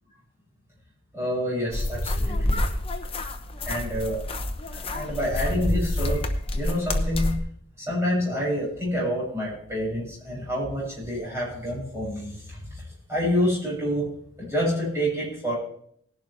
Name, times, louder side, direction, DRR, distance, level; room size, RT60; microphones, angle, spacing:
voice 1, 1.1-2.6 3.6-4.4 4.7-6.2 6.5-7.3 7.8-12.8 13.1-14.1 14.4-15.5, equal, 15° right, -7 dB, 7.1 m, -28 dB
sound 1, 1.7-7.4, left 1 dB, 25° left, 0.9 m, -27 dB
18.5 x 11.0 x 3.4 m, 0.65 s
head